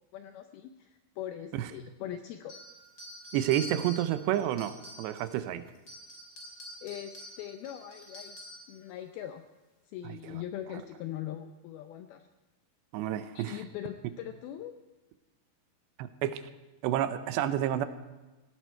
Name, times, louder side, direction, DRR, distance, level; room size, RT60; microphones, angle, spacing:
voice 1, 0.1-2.5 6.8-8.4 8.7-9.4 9.9-12.2 13.3-14.7, left 11 dB, 80° left, 7 dB, 2.2 m, -41 dB
sound 1, 2.5-5.4 5.7-8.7, left 1 dB, 25° left, 2.9 m, -46 dB
voice 2, 3.3-5.7 10.0-10.4 12.9-13.6 16.0-16.4 16.8-17.9, right 12 dB, 80° right, 11 dB, 2.9 m, -30 dB
17.5 x 17.0 x 4.5 m, 1.1 s
omnidirectional pair, 5.1 m